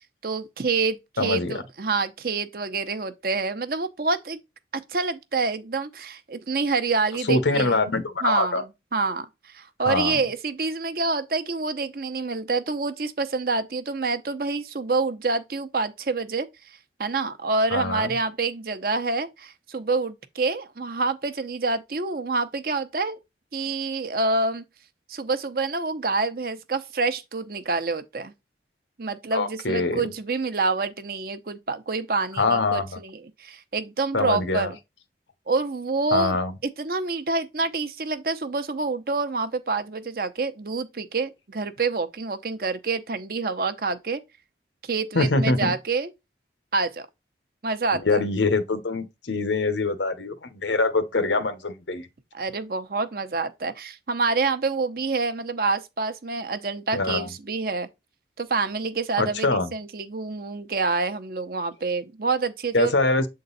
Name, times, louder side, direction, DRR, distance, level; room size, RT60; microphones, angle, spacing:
voice 1, 0.2-4.4 4.9-7.8 8.2-8.7 8.9-23.2 23.5-24.6 25.1-28.3 29.0-34.8 35.5-36.4 36.8-44.2 44.8-46.1 46.7-47.1 47.6-48.2 52.3-57.9 58.4-62.9, right 3 dB, 55° right, 0.7 m, -27 dB
voice 2, 1.2-1.6 7.2-8.6 9.9-10.2 17.7-18.1 29.3-30.1 32.4-33.0 34.1-34.7 36.1-36.5 45.1-45.7 47.9-52.1 56.9-57.3 59.2-59.7 62.7-63.3, left 3 dB, 90° left, 1.1 m, -24 dB
7.7 x 3.8 x 4.0 m
head